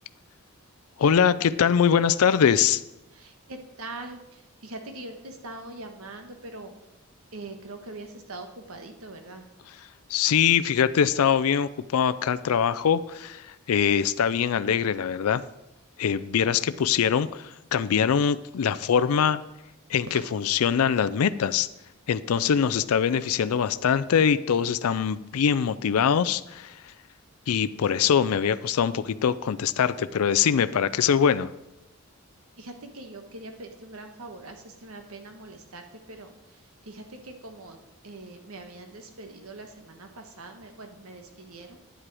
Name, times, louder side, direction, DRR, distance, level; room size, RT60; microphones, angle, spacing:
voice 1, 1.0-2.8 10.1-15.4 16.0-19.4 19.9-21.7 22.1-26.8 27.5-31.5, left 7 dB, 75° left, 14 dB, 0.4 m, -23 dB
voice 2, 3.1-6.7 7.3-9.5 20.1-20.3 32.6-41.8, right 2 dB, 75° right, 6 dB, 1.3 m, -42 dB
10.0 x 7.5 x 4.8 m, 0.92 s
head